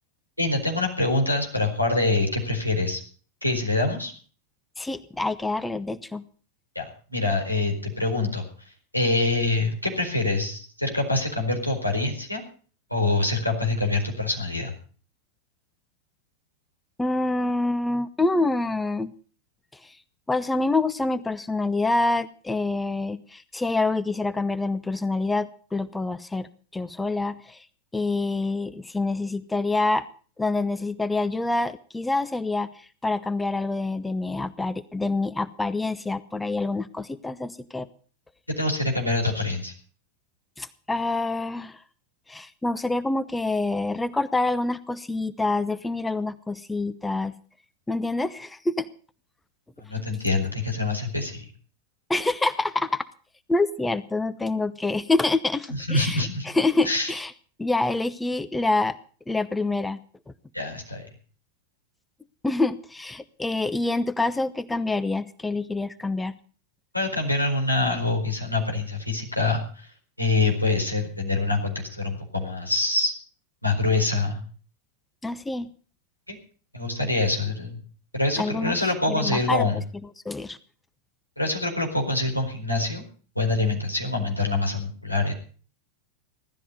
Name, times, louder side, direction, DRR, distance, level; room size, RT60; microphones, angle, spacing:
voice 1, 0.4-3.0 3.4-4.1 6.7-8.5 8.9-12.4 12.9-14.7 38.5-39.7 49.8-51.5 55.7-56.5 56.8-57.1 60.5-61.1 66.9-69.9 70.2-73.1 73.6-74.4 76.3-76.4 76.7-77.8 78.1-79.8 81.4-83.0 83.3-85.3, left 2 dB, 90° left, 1 dB, 4.5 m, -25 dB
voice 2, 4.8-6.2 17.0-19.1 19.7-20.0 20.3-27.7 27.9-30.0 30.4-37.9 40.6-41.8 42.3-47.3 47.9-48.9 52.1-53.0 53.5-57.3 57.6-59.0 59.3-60.0 62.4-66.4 75.2-75.7 78.4-78.8 79.1-79.7 80.2-80.6, left 2 dB, 10° left, 15 dB, 0.8 m, -26 dB
17.0 x 13.0 x 5.3 m, 0.42 s
figure-of-eight pair, 90°, 0 cm